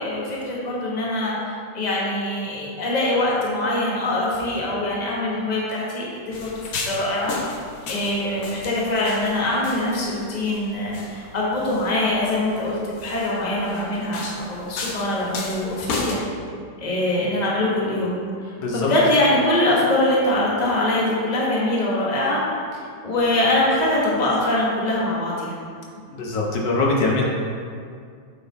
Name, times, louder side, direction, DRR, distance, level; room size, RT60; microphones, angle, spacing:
voice 1, 0.0-7.4 7.9-16.2 16.8-18.1 18.4-22.4 23.0-25.6, left 1 dB, 25° left, -5 dB, 1.1 m, -23 dB
sound 1, 6.3-16.2, left 3 dB, 65° left, 1.1 m, -34 dB
voice 2, 18.6-18.9 26.2-27.2, left 3 dB, 80° left, -2 dB, 1.6 m, -22 dB
7.6 x 3.9 x 4.0 m, 2.2 s
omnidirectional pair, 1.9 m